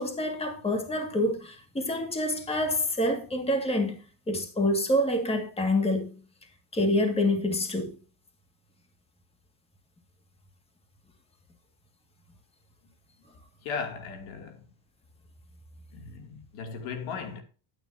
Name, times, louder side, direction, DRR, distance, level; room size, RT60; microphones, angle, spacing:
voice 1, 0.0-4.0 4.3-6.2 6.7-8.0, left 1 dB, 10° left, 1.9 m, -27 dB
voice 2, 13.6-14.6 15.9-17.4, left 5 dB, 65° left, 2.6 m, -37 dB
11.5 x 9.2 x 2.7 m
cardioid pair, 135°, 50 cm